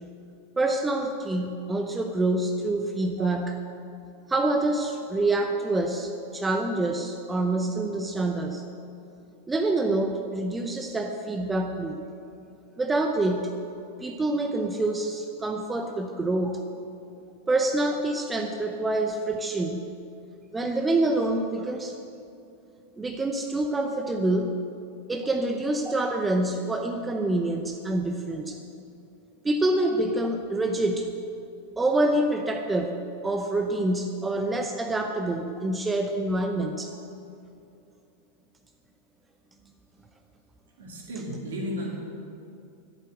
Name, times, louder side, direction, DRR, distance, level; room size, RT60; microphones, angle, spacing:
voice 1, 0.6-3.6 4.3-8.6 9.5-12.0 12.8-13.5 14.0-16.6 17.5-19.8 20.5-21.9 23.0-24.5 25.1-28.6 29.4-31.1 31.8-36.9, right 2 dB, 10° right, 4 dB, 0.7 m, -26 dB
voice 2, 40.8-41.9, equal, 60° right, -1 dB, 2.8 m, -34 dB
11.5 x 8.3 x 7.7 m, 2.6 s
figure-of-eight pair, 90°, 0 cm